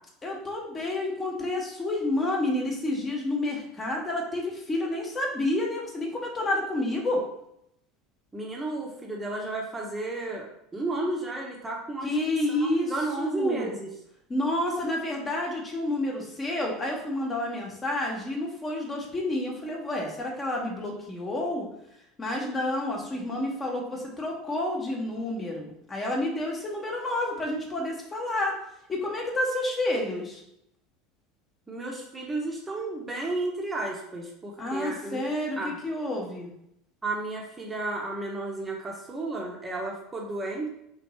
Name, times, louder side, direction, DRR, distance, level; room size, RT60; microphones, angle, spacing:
voice 1, 0.2-7.2 12.0-12.9 13.2-13.7 14.3-21.7 22.2-28.5 28.9-30.4 34.6-36.5, left 1 dB, 25° left, -1 dB, 1.1 m, -29 dB
voice 2, 8.3-10.5 10.7-12.1 12.5-13.9 31.7-35.3 35.6-35.8 37.0-40.7, right 2 dB, 15° right, -1 dB, 0.8 m, -32 dB
3.8 x 3.1 x 3.1 m, 0.78 s
figure-of-eight pair, 75°, 0 cm